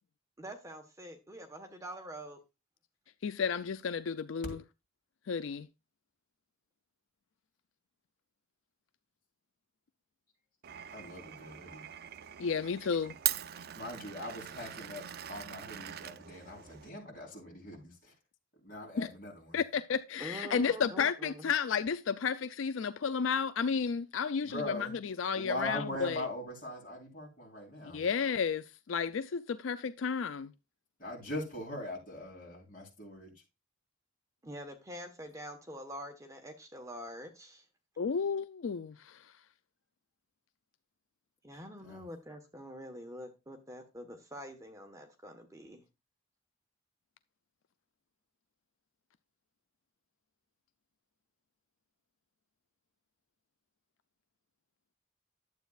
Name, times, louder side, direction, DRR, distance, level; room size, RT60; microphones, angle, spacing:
voice 1, 0.4-2.4 20.2-21.5 34.4-37.6 41.4-45.8, equal, 15° right, 1.2 m, -45 dB
voice 2, 3.2-4.6 5.3-5.7 12.4-13.2 19.0-19.1 19.5-26.3 27.9-30.5 38.0-39.3, left 6 dB, 80° left, 0.4 m, -32 dB
Glass, 10.6-16.9, right 12 dB, 50° right, 0.4 m, -41 dB
voice 3, 10.9-11.8 13.7-15.0 15.3-18.1 18.6-19.6 24.4-24.9 25.3-28.0 31.0-33.3 41.8-42.0, left 1 dB, 45° left, 4.1 m, -41 dB
11.5 x 8.0 x 2.4 m
head